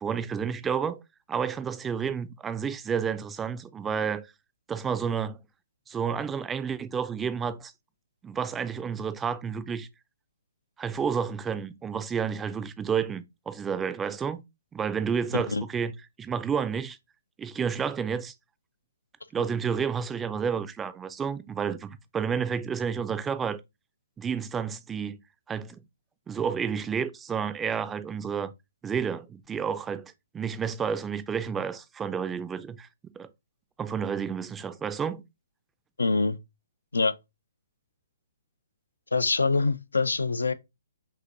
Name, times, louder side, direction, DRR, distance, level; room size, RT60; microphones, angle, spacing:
voice 1, 0.0-1.0 1.3-4.3 4.7-5.4 5.9-7.7 8.2-9.9 10.8-14.4 14.7-15.9 16.2-17.0 17.4-18.3 19.3-23.6 24.2-25.2 25.5-25.8 26.3-28.5 28.8-32.9 33.2-33.3 33.8-35.2, right 7 dB, 15° right, 0.4 m, -30 dB
voice 2, 36.0-36.4 36.9-37.1 39.1-40.5, left 3 dB, 80° left, 0.4 m, -24 dB
5.4 x 2.8 x 2.6 m
figure-of-eight pair, 130°, 0 cm